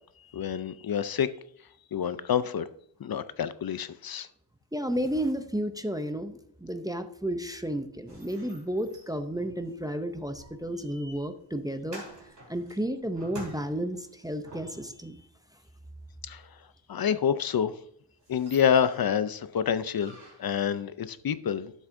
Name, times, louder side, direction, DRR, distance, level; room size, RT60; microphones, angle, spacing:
voice 1, 0.3-1.3 1.9-2.7 3.0-4.3 16.2-16.4 16.9-17.7 18.3-21.7, left 8 dB, 50° left, 14 dB, 0.5 m, -27 dB
voice 2, 4.7-12.0 12.5-15.2, right 1 dB, 10° right, 7 dB, 0.4 m, -32 dB
sound 1, 8.1-15.1 17.5-17.6 17.9-18.0 18.2-19.3 19.9-20.6, right 1 dB, 40° right, 3.4 m, -49 dB
11.5 x 7.4 x 2.5 m, 0.68 s
wide cardioid pair, 175°, 47 cm